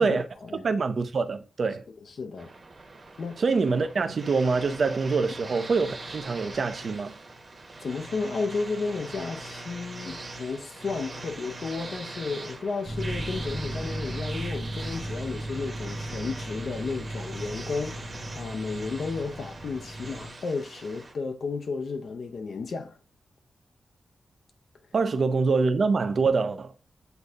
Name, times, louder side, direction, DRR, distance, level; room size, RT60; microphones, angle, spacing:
voice 1, 0.0-0.6 2.1-2.5 3.2-3.4 7.8-23.0, left 4 dB, 55° left, 0.6 m, -33 dB
voice 2, 0.6-1.8 3.4-7.2 24.9-26.7, right 4 dB, 45° right, 0.5 m, -25 dB
sound 1, 2.4-21.1, right 2 dB, 30° right, 1.0 m, -41 dB
sound 2, 12.8-20.3, right 1 dB, 5° right, 0.9 m, -36 dB
7.9 x 2.7 x 2.4 m
wide cardioid pair, 165°, 0 cm